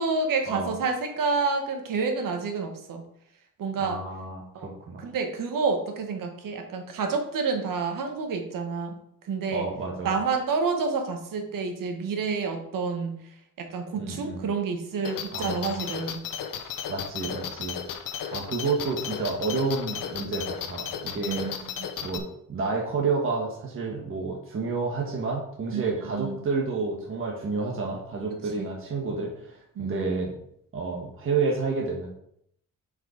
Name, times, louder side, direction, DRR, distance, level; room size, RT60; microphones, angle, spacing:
voice 1, 0.0-3.0 3.6-4.0 4.5-4.7 5.0-9.0 9.2-9.6 10.0-13.1 13.6-16.2 21.3-21.9 25.7-26.4 28.6-28.7 29.7-30.1, right 4 dB, 75° right, 4 dB, 1.5 m, -29 dB
voice 2, 3.8-4.4 4.9-5.0 9.5-10.1 13.9-14.4 15.3-15.9 16.6-17.8 18.3-21.5 22.0-22.2 22.5-30.4 30.7-32.1, right 4 dB, 40° right, -2 dB, 1.4 m, -30 dB
sound 1, 15.0-22.2, left 8 dB, 80° left, 0.9 m, -34 dB
7.3 x 5.1 x 5.0 m, 0.72 s
wide cardioid pair, 175°, 33 cm